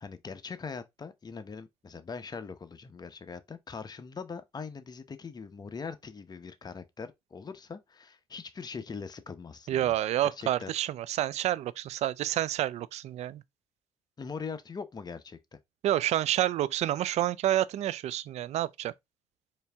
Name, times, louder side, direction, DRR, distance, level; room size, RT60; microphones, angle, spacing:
voice 1, 0.0-9.9 10.4-10.7 14.2-15.4, left 5 dB, 35° left, 0.8 m, -41 dB
voice 2, 9.7-13.4 15.8-18.9, right 13 dB, 65° right, 0.4 m, -29 dB
4.4 x 2.7 x 3.4 m
supercardioid pair, 60°, 12 cm